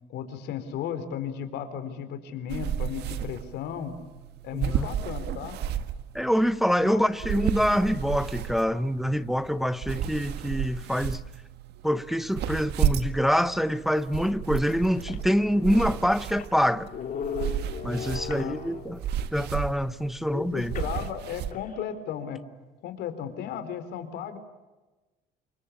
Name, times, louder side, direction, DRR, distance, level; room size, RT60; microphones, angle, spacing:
voice 1, 0.1-4.0 4.4-5.6 6.8-7.0 7.3-7.4 15.8-16.1 18.3-18.6 20.3-22.4 22.8-24.4, left 8 dB, 80° left, 4.1 m, -35 dB
sound 1, 2.5-21.5, right 9 dB, 75° right, 1.7 m, -33 dB
voice 2, 4.5-4.9 6.1-11.2 11.8-16.9 17.8-19.0 19.3-20.7, equal, ahead, 0.9 m, -25 dB
sound 2, 14.0-14.1 14.7-14.8 15.0-19.1 20.7-21.8, left 6 dB, 55° left, 3.8 m, -38 dB
28.0 x 24.5 x 8.5 m
cardioid pair, 110°, 17 cm